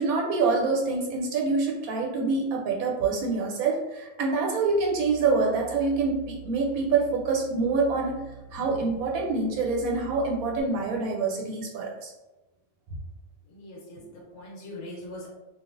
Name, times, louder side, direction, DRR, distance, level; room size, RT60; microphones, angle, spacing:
voice 1, 0.0-8.2 8.5-12.1, right 4 dB, 80° right, 0 dB, 1.0 m, -26 dB
sound 1, 4.7-10.6, right 10 dB, 5° right, 0.4 m, -46 dB
voice 2, 13.5-15.3, left 1 dB, 60° left, -3 dB, 1.1 m, -41 dB
3.2 x 2.4 x 2.4 m, 1.0 s
omnidirectional pair, 1.5 m